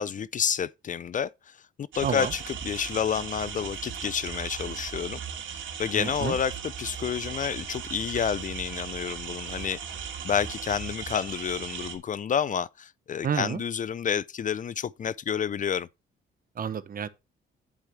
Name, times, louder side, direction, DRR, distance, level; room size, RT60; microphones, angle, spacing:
voice 1, 0.0-1.6 1.9-5.2 5.5-9.8 10.2-15.9, left 8 dB, 40° left, 0.5 m, -29 dB
sound 1, 1.9-12.0, right 7 dB, 75° right, 2.6 m, -37 dB
voice 2, 5.9-6.4 13.2-13.6 16.6-17.1, right 7 dB, 45° right, 1.0 m, -30 dB
9.0 x 8.1 x 3.3 m
cardioid pair, 90°, 20 cm